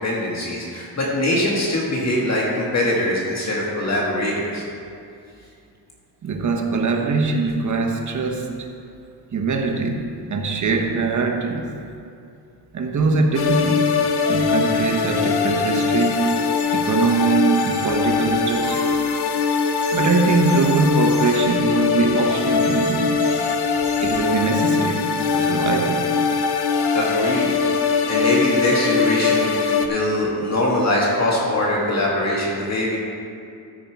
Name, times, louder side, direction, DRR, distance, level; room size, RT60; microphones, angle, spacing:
voice 1, 0.0-4.6 26.9-27.7 28.1-33.0, left 1 dB, 40° left, -4 dB, 1.7 m, -22 dB
voice 2, 6.2-8.7 9.3-11.7 12.7-13.9 14.3-16.4 16.7-19.0 19.9-23.2 24.0-26.1, right 4 dB, 45° right, 3 dB, 1.1 m, -22 dB
sound 1, 13.3-29.9, left 5 dB, 70° left, 0.8 m, -21 dB
sound 2, 15.8-16.7 17.5-17.9 18.5-18.8 19.8-20.2 20.5-20.8 21.1-21.4 22.6-23.0 23.2-23.6 23.8-24.2 24.8-26.2 27.7-28.6 29.0-29.7, right 3 dB, 25° right, 1.1 m, -40 dB
13.5 x 5.4 x 4.7 m, 2.5 s
cardioid pair, 120°, 41 cm